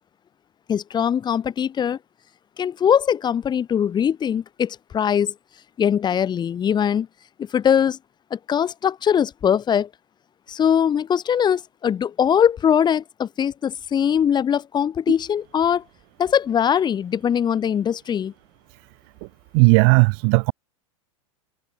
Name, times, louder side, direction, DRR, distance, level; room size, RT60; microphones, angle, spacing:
voice 1, 0.7-2.0 2.6-5.3 5.8-7.1 7.4-8.0 8.3-9.9 10.5-15.8 16.2-18.3, left 8 dB, 25° left, 2.4 m, -21 dB
voice 2, 19.5-20.5, right 40 dB or more, 45° right, 0.5 m, -15 dB
hypercardioid pair, 100°, 17 cm